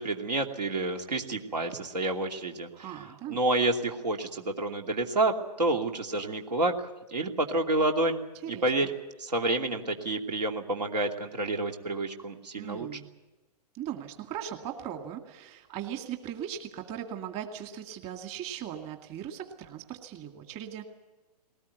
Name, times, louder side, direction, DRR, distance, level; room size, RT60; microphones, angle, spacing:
voice 1, 0.0-3.0 3.3-6.7 7.1-8.2 8.5-8.9 9.2-13.0, right 2 dB, 90° right, 3 dB, 2.8 m, -29 dB
voice 2, 2.7-3.4 8.4-8.9 12.6-13.1 13.7-20.8, right 10 dB, 30° right, 5 dB, 2.3 m, -39 dB
20.0 x 19.0 x 9.4 m, 1.1 s
hypercardioid pair, 130°, 21 cm